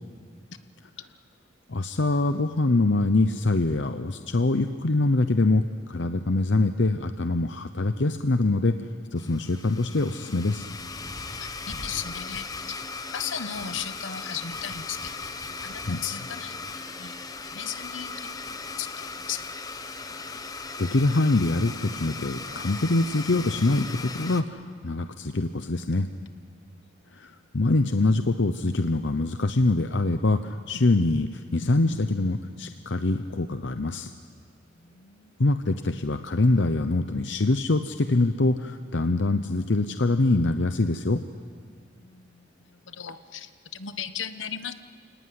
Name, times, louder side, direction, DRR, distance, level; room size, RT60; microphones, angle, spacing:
voice 1, 1.7-8.8 9.1-10.7 15.8-16.0 20.1-20.4 20.8-26.1 27.1-34.1 35.4-41.2, left 2 dB, 70° left, 8 dB, 0.8 m, -24 dB
Domestic sounds home sounds, 9.2-24.4, left 4 dB, 20° left, 1.0 m, -38 dB
voice 2, 11.4-12.8 13.1-15.1 15.6-16.6 16.9-17.2 17.5-19.4 26.7-27.3 34.7-35.4 42.0-44.7, left 8 dB, 85° left, 10 dB, 1.2 m, -37 dB
29.5 x 18.5 x 9.6 m, 2.1 s
head